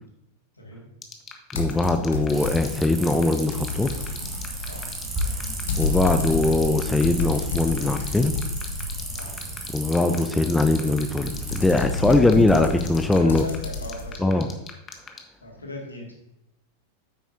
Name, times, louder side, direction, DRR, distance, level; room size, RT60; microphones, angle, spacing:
voice 1, 0.6-0.9 4.7-4.9 9.1-9.6 13.1-14.5 15.4-16.3, left 1 dB, 80° left, 0 dB, 2.2 m, -39 dB
sound 1, 1.0-15.2, left 7 dB, 25° left, 1.2 m, -39 dB
voice 2, 1.5-3.9 5.8-8.3 9.7-13.4 14.2-14.5, left 2 dB, 5° left, 7 dB, 0.6 m, -21 dB
sound 2, 1.6-2.8 3.2-9.4 10.9-14.1, left 3 dB, 60° left, 1.3 m, -30 dB
sound 3, 2.3-11.7, right 1 dB, 15° right, 2.2 m, -34 dB
9.2 x 8.5 x 2.7 m, 0.89 s
figure-of-eight pair, 90°, 0 cm